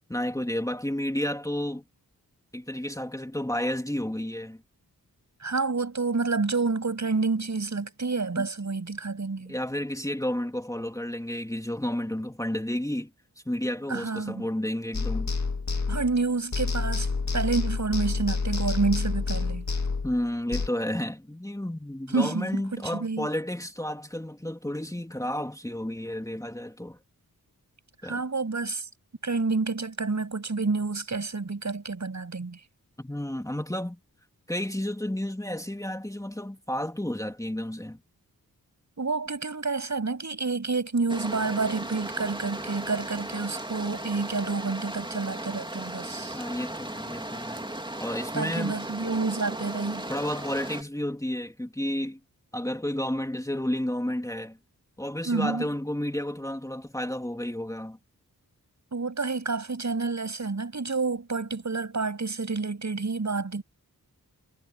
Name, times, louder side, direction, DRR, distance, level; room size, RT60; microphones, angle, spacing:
voice 1, 0.1-1.8 2.5-4.6 8.4-8.5 9.5-13.1 13.4-15.3 20.0-27.0 28.0-28.2 33.0-34.0 34.5-38.0 46.3-47.6 48.0-48.8 50.1-52.2 52.5-54.6 55.0-58.0, left 1 dB, 10° left, 2.9 m, -31 dB
voice 2, 5.4-9.6 13.9-14.5 15.9-19.6 22.1-23.3 28.0-28.9 29.2-32.6 39.0-46.4 48.3-50.1 55.3-55.7 58.9-63.6, right 4 dB, 50° right, 8.0 m, -29 dB
sound 1, 14.9-16.3 16.5-20.7, left 4 dB, 50° left, 2.5 m, -28 dB
sound 2, 41.1-50.8, right 1 dB, 15° right, 2.8 m, -36 dB
cardioid pair, 50°, 36 cm